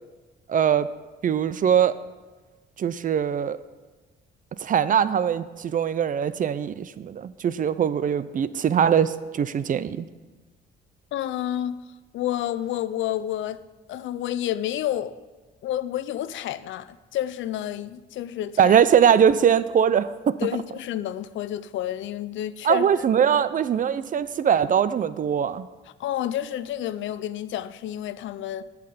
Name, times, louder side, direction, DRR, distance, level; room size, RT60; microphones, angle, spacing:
voice 1, 0.5-0.9 1.2-1.9 2.8-3.6 4.6-10.1 18.6-20.4 22.6-25.7, right 8 dB, 45° right, 0.4 m, -21 dB
voice 2, 11.1-11.8 12.1-13.6 13.9-15.1 15.6-18.8 20.4-22.9 26.0-28.6, left 12 dB, 75° left, 0.5 m, -29 dB
8.4 x 5.9 x 6.8 m
cardioid pair, 90°, 20 cm